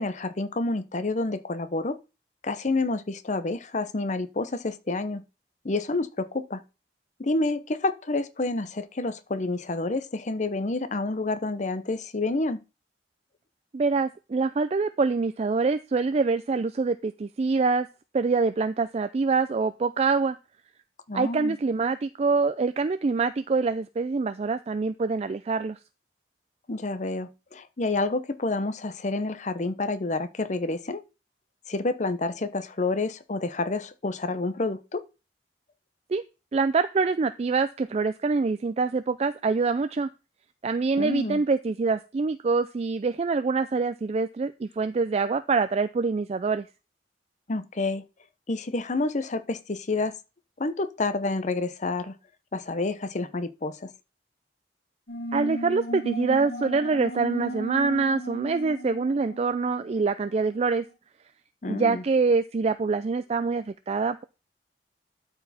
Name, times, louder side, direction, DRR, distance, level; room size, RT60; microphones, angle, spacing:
voice 1, 0.0-2.0 2.4-5.2 5.6-6.6 7.2-12.6 21.1-21.6 26.7-31.0 31.7-35.0 41.0-41.4 47.5-48.0 48.5-50.1 50.6-52.2 52.5-53.9 61.6-62.0, left 2 dB, 45° left, 0.8 m, -29 dB
voice 2, 13.7-17.9 18.1-20.4 21.1-25.8 36.1-36.2 36.5-40.1 40.6-46.6 55.3-60.8 61.7-64.2, right 4 dB, 35° right, 0.4 m, -25 dB
sound 1, 55.1-60.3, equal, 60° left, 1.6 m, -35 dB
12.5 x 4.6 x 4.2 m
head